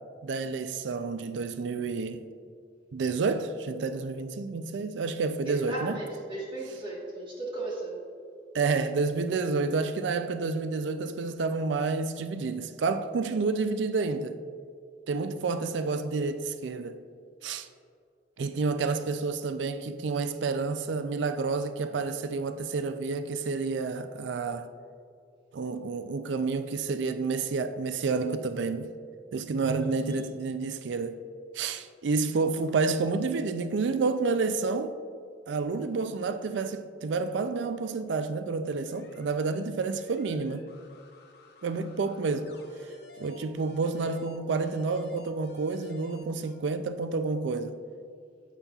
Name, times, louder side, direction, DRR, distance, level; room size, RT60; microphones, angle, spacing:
voice 1, 0.2-2.3 2.9-6.0 8.5-14.4 15.1-17.0 17.4-17.7 18.4-24.7 25.5-28.9 29.3-31.2 31.5-35.0 35.5-40.7 41.6-42.6 43.2-47.8, right 4 dB, 80° right, 0.4 m, -29 dB
voice 2, 5.4-8.0 29.8-30.3, right 2 dB, 25° right, 1.4 m, -36 dB
sound 1, 38.8-46.5, left 2 dB, 60° left, 0.9 m, -53 dB
9.0 x 8.3 x 2.4 m
head